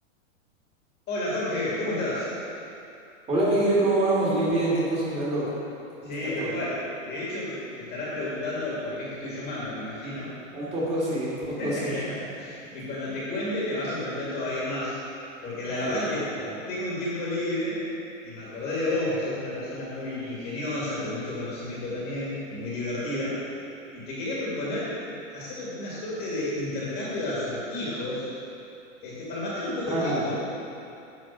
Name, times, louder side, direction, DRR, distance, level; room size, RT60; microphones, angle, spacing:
voice 1, 1.1-2.3 6.0-10.3 11.6-15.0 15.4-16.3 16.7-17.8 18.2-23.4 23.9-25.0 25.3-28.3 29.0-30.4, left 1 dB, 25° left, -7 dB, 2.2 m, -31 dB
voice 2, 3.3-5.5 6.0-6.6 10.5-12.0 15.7-15.9 16.3-16.5 29.9-30.3, right 1 dB, 15° right, -7 dB, 2.5 m, -26 dB
10.5 x 4.7 x 7.3 m, 2.7 s
hypercardioid pair, 155°, 40 cm